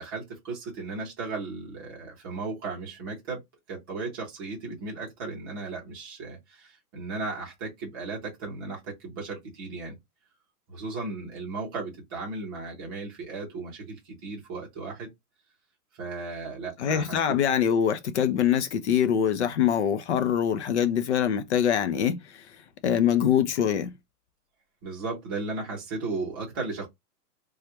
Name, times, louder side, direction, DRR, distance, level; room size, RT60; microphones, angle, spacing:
voice 1, 0.0-3.4 3.7-10.0 10.7-15.1 16.0-17.4 24.8-26.9, right 3 dB, 15° right, 0.6 m, -35 dB
voice 2, 16.8-22.2 22.8-23.9, left 9 dB, 45° left, 0.5 m, -24 dB
3.1 x 2.3 x 2.8 m
hypercardioid pair, 170°, 48 cm